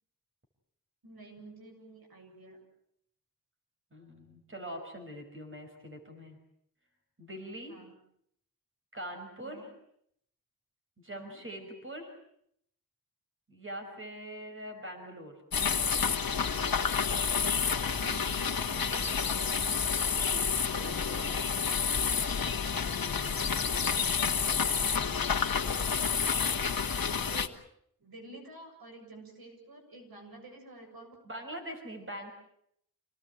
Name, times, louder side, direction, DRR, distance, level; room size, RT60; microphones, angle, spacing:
voice 1, 1.0-2.6 7.7-7.9 9.4-9.7 11.1-11.4 13.8-14.1 17.9-19.3 23.0-23.5 25.6-26.0 27.3-27.5 28.0-31.2, right 2 dB, 80° right, 2 dB, 7.6 m, -50 dB
voice 2, 3.9-6.4 7.2-7.8 8.9-9.7 11.0-12.1 13.5-15.3 20.2-21.4 31.3-32.3, equal, 35° right, 4 dB, 5.5 m, -43 dB
sound 1, 15.5-27.5, left 6 dB, 70° left, 1.7 m, -29 dB
27.5 x 19.0 x 9.0 m, 0.72 s
wide cardioid pair, 110°, 36 cm